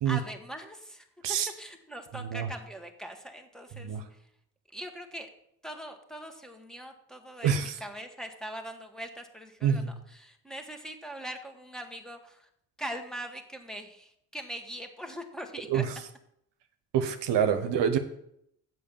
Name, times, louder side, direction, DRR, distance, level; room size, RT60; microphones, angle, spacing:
voice 1, 0.0-4.3 4.7-5.3 5.6-12.5 12.8-15.8, equal, ahead, 3 dB, 1.7 m, -42 dB
voice 2, 2.1-2.5 3.8-4.0 7.4-7.7 9.6-9.9 15.7-15.9 16.9-18.0, right 8 dB, 65° right, 8 dB, 1.0 m, -26 dB
7.4 x 6.1 x 7.0 m, 0.74 s
hypercardioid pair, 50°, 45 cm